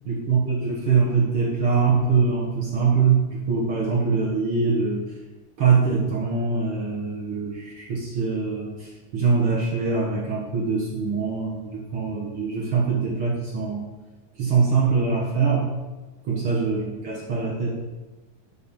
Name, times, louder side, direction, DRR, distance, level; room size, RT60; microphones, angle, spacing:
voice 1, 0.1-5.0 5.6-13.8 14.4-15.7 16.2-17.7, right 5 dB, 50° right, -3 dB, 1.7 m, -23 dB
11.0 x 6.4 x 5.7 m, 1.1 s
omnidirectional pair, 4.5 m